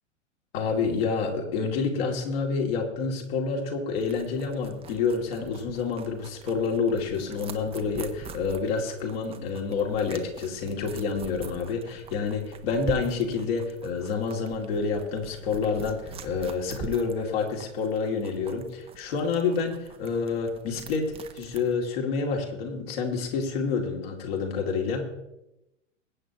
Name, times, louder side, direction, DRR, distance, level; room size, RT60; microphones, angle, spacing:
voice 1, 0.5-25.1, left 5 dB, 50° left, 1 dB, 2.7 m, -28 dB
sound 1, 4.0-21.7, right 6 dB, 15° right, 0.8 m, -44 dB
21.5 x 9.1 x 3.0 m, 0.92 s
figure-of-eight pair, 105°, 37 cm